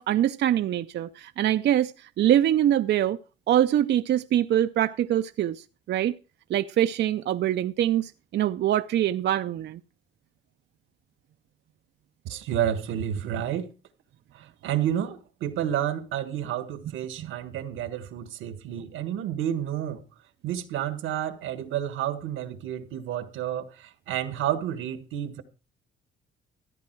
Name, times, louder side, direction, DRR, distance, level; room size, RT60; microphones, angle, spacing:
voice 1, 0.0-3.2 3.5-6.1 6.5-9.8 17.2-17.3, right 11 dB, 60° right, 0.5 m, -24 dB
voice 2, 12.2-13.7 14.3-20.0 20.4-25.4, right 10 dB, 90° right, 1.4 m, -30 dB
14.0 x 9.6 x 4.5 m
cardioid pair, 90°, 20 cm